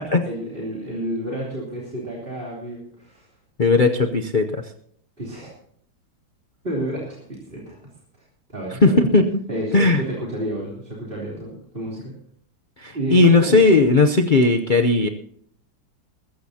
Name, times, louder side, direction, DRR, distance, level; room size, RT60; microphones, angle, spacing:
voice 1, 0.2-3.3 5.2-5.5 6.6-7.8 8.5-9.0 9.5-12.1 12.9-13.6, right 1 dB, 25° right, -4 dB, 3.5 m, -30 dB
voice 2, 3.6-4.6 8.8-9.3 9.7-10.0 12.8-15.1, left 3 dB, 90° left, 5 dB, 0.4 m, -17 dB
20.5 x 15.0 x 2.9 m, 0.65 s
omnidirectional pair, 2.2 m